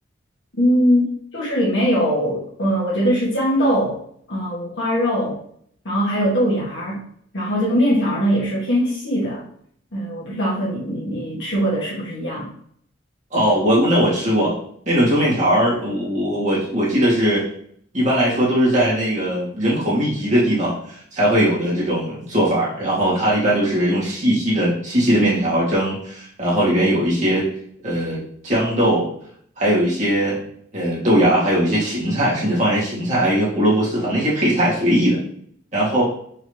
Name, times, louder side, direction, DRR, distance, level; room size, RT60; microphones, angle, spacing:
voice 1, 0.6-1.1 1.3-4.0 4.3-5.4 5.8-7.0 7.3-9.4 9.9-12.5, equal, 70° left, -5 dB, 1.7 m, -21 dB
voice 2, 13.3-14.6 14.9-17.4 17.9-27.5 27.8-29.1 29.6-30.4 30.7-35.2 35.7-36.0, equal, 40° right, -6 dB, 1.9 m, -19 dB
4.7 x 3.1 x 3.3 m, 0.62 s
head